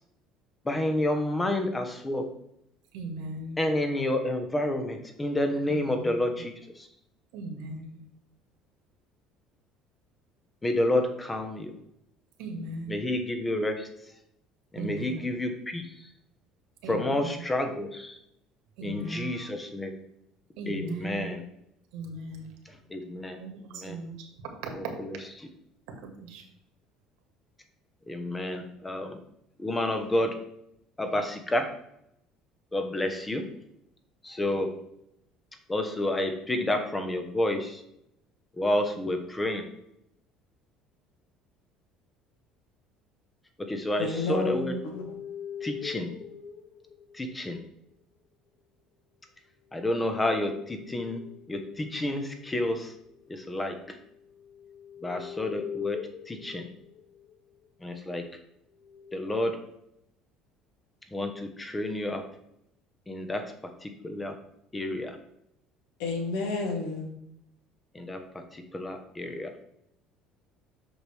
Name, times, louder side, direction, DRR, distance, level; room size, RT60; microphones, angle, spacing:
voice 1, 0.6-2.2 3.6-6.5 10.6-11.7 12.9-13.9 14.7-15.8 16.9-18.1 18.8-19.9 20.7-21.4 22.9-23.4 23.8-24.0 28.1-29.2 29.6-30.3 31.0-31.7 32.7-33.4 34.2-34.7 35.7-37.8 38.6-39.6 43.7-44.7 45.6-46.1 47.1-47.6 49.7-51.2 51.5-52.9 53.3-53.7 55.0-56.0 56.3-56.6 57.8-58.2 59.1-59.5 61.1-62.2 63.1-63.4 63.8-64.3 64.7-65.2 67.9-68.2 68.5-69.5, left 1 dB, 15° left, 1.2 m, -29 dB
voice 2, 2.9-3.6 5.7-6.2 7.3-8.0 12.4-13.0 14.8-15.4 16.8-17.4 18.8-19.3 20.6-21.4 21.9-22.5 23.4-24.3 24.6-24.7 26.0-26.4, right 2 dB, 85° right, 2.0 m, -38 dB
voice 3, 44.0-45.1 66.0-67.1, left 3 dB, 85° left, 1.8 m, -30 dB
sound 1, 44.8-47.7 49.7-57.4 58.8-59.2, left 8 dB, 70° left, 1.3 m, -43 dB
7.8 x 6.0 x 3.5 m
cardioid pair, 120°, 0 cm